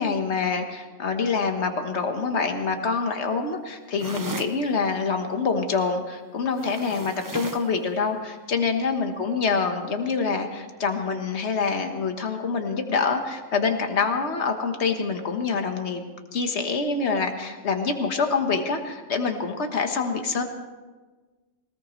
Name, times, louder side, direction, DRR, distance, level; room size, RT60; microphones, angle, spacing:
voice 1, 0.0-16.0 16.3-20.4, left 4 dB, 60° left, 5 dB, 1.6 m, -26 dB
sound 1, 4.0-4.6 6.5-7.7, right 3 dB, 25° right, 0.4 m, -35 dB
20.5 x 19.5 x 3.2 m, 1.3 s
omnidirectional pair, 1.3 m